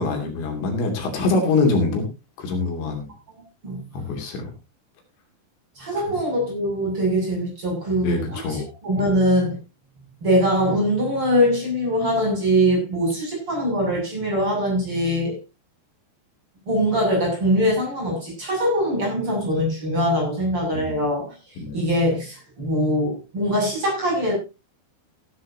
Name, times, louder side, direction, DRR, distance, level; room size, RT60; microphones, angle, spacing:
voice 1, 0.0-2.1 2.4-3.1 3.9-4.5 5.9-6.0 8.0-8.7 9.0-9.1 20.7-21.0 21.6-21.8, left 3 dB, 70° left, 4.9 m, -24 dB
voice 2, 5.8-9.6 10.2-15.4 16.7-21.3 21.7-24.3, equal, 25° right, 7.9 m, -22 dB
15.5 x 13.5 x 2.8 m
omnidirectional pair, 5.5 m